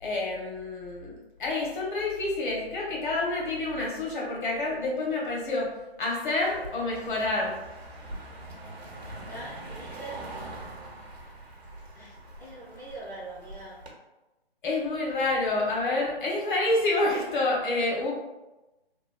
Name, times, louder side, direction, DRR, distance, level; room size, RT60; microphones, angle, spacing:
voice 1, 0.0-5.7 6.0-7.6 14.6-18.1, left 2 dB, 50° left, -3 dB, 1.0 m, -28 dB
Car passing by, 6.4-13.9, right 2 dB, 85° right, 0.8 m, -43 dB
voice 2, 9.1-10.2 11.9-13.8, right 2 dB, ahead, -18 dB, 0.3 m, -43 dB
2.9 x 2.2 x 2.3 m, 1.0 s
figure-of-eight pair, 145°, 31 cm